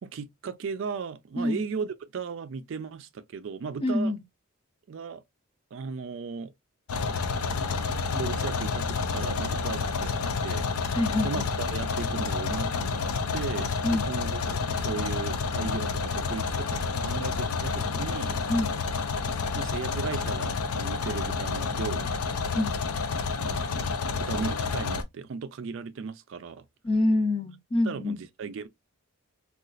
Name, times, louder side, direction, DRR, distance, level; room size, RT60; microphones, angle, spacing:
voice 1, 0.0-4.1 4.9-5.2 5.7-6.5 8.1-10.1 10.4-11.0 11.2-18.4 19.5-22.1 23.1-23.7 24.1-26.6 27.8-28.7, right 5 dB, 60° right, 0.3 m, -36 dB
voice 2, 3.8-4.2 10.9-11.5 13.8-14.1 18.5-18.7 22.5-22.7 26.8-28.2, left 1 dB, 25° left, 0.5 m, -26 dB
sound 1, 6.9-25.0, left 4 dB, 90° left, 0.5 m, -29 dB
3.9 x 2.3 x 2.3 m
head